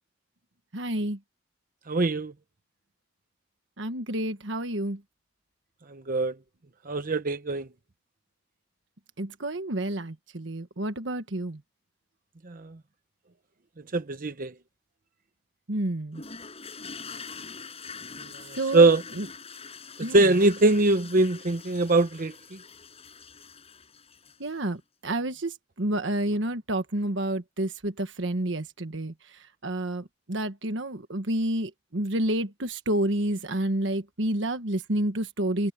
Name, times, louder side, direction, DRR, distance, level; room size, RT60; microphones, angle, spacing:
voice 1, 0.7-1.2 3.8-5.0 9.2-11.6 15.7-16.2 18.6-18.9 19.2-19.3 20.0-20.3 24.4-29.1 29.6-35.7, right 1 dB, 65° right, 1.4 m, -29 dB
voice 2, 1.9-2.3 5.9-6.4 6.9-7.7 12.4-12.8 13.9-14.5 18.2-19.0 20.0-22.6, right 2 dB, 45° right, 0.8 m, -23 dB
sound 1, 16.1-24.6, left 5 dB, 30° left, 7.3 m, -44 dB
head